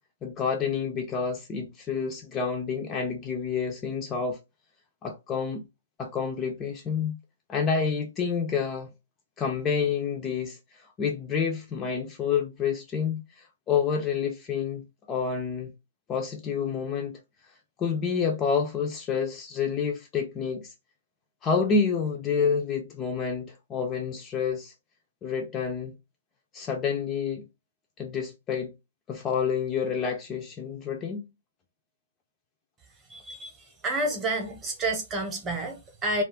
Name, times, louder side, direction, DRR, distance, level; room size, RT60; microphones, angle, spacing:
voice 1, 0.2-4.4 5.0-5.6 6.0-7.2 7.5-8.9 9.4-15.7 16.1-17.2 17.8-20.7 21.4-24.7 25.2-26.0 26.5-27.5 28.0-28.7 29.1-31.3, left 6 dB, 20° left, 0.3 m, -28 dB
voice 2, 33.1-33.5 33.8-36.2, right 2 dB, 15° right, 0.8 m, -29 dB
2.3 x 2.2 x 3.5 m
hypercardioid pair, 155°, 0 cm